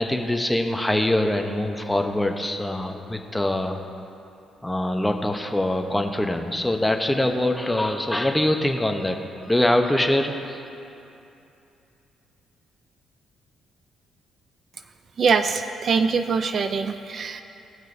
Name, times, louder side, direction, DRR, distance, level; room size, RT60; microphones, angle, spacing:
voice 1, 0.0-3.8 4.6-10.6, left 1 dB, 10° left, 4 dB, 0.8 m, -23 dB
voice 2, 15.2-17.4, right 5 dB, 50° right, 9 dB, 0.4 m, -23 dB
18.5 x 6.2 x 2.6 m, 2.7 s
cardioid pair, 90°, 0 cm